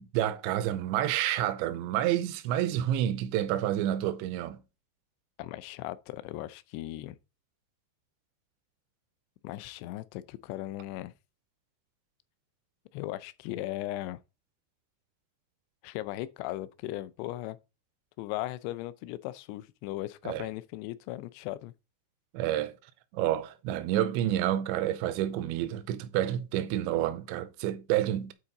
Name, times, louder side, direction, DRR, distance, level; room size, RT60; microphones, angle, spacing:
voice 1, 0.0-4.6 20.3-20.5 22.3-22.7 23.1-28.3, right 12 dB, 85° right, 2.9 m, -29 dB
voice 2, 5.4-7.2 9.4-11.1 12.9-14.2 15.8-17.6 18.2-21.7, left 16 dB, 85° left, 2.5 m, -37 dB
9.8 x 4.3 x 3.8 m
omnidirectional pair, 5.2 m